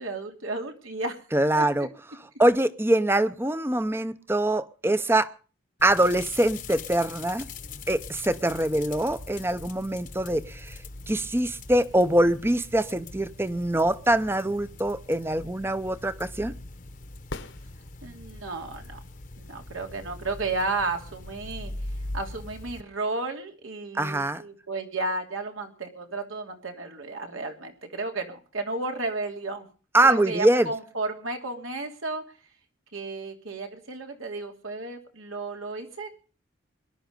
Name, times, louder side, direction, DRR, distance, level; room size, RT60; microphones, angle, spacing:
voice 1, 0.0-1.2 1.5-1.6 18.0-19.0 19.4-21.7 22.1-29.6 30.1-32.2 32.9-36.2, right 3 dB, 85° right, 3 dB, 3.0 m, -33 dB
voice 2, 1.3-1.9 2.4-5.3 5.8-7.5 7.9-10.8 11.1-16.5 23.9-24.4 29.9-30.7, right 1 dB, 10° right, 14 dB, 0.7 m, -24 dB
sound 1, 5.8-22.8, left 2 dB, 40° left, 1.0 m, -42 dB
sound 2, 17.3-18.4 22.3-22.4, left 2 dB, 65° left, 1.3 m, -40 dB
21.5 x 11.5 x 5.3 m, 0.39 s
head